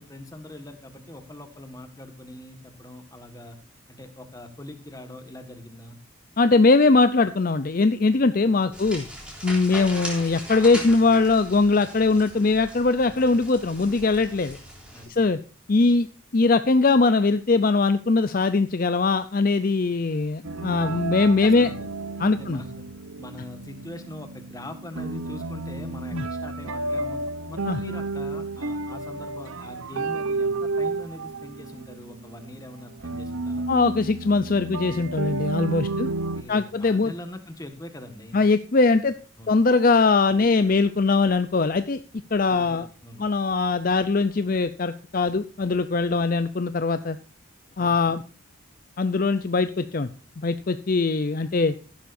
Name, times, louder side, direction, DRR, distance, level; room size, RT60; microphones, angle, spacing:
voice 1, 0.0-3.6 3.9-6.0 8.6-8.8 14.9-15.3 20.8-21.9 22.2-22.9 23.2-27.2 27.5-33.7 35.8-38.4 38.9-39.0 39.4-39.6 42.5-43.2 47.8-48.2, left 1 dB, 15° left, 7 dB, 1.6 m, -42 dB
voice 2, 6.4-9.0 9.4-14.6 15.1-15.4 15.7-16.1 16.3-21.7 22.2-22.6 26.1-26.2 27.7-27.8 33.7-36.1 36.5-37.1 38.3-39.2 39.5-42.0 42.3-42.9 43.2-47.2 47.8-48.2 49.0-50.1 50.4-51.8, left 3 dB, 40° left, 12 dB, 0.5 m, -21 dB
sound 1, 8.7-15.1, equal, 5° right, 3.4 m, -39 dB
sound 2, 20.4-36.4, right 3 dB, 80° right, 0.8 m, -31 dB
15.0 x 11.5 x 2.6 m, 0.37 s
head